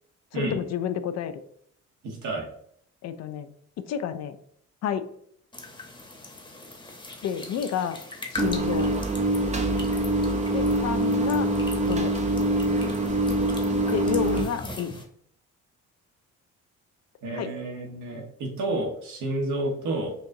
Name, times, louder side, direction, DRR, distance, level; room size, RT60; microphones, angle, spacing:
voice 1, 0.3-1.3 3.0-3.5 3.8-4.4 4.8-5.1 7.2-8.0 8.3-8.9 10.5-11.5 11.9-12.1 13.9-15.0 17.3-17.5, left 8 dB, 60° left, 11 dB, 0.4 m, -30 dB
voice 2, 2.0-2.5 17.2-20.1, right 2 dB, 75° right, 0 dB, 1.2 m, -30 dB
sound 1, 5.5-15.0, left 2 dB, 15° left, 0.9 m, -41 dB
sound 2, 8.4-14.5, right 1 dB, 25° right, 0.5 m, -24 dB
4.6 x 2.6 x 2.7 m, 0.66 s
cardioid pair, 90°, 30 cm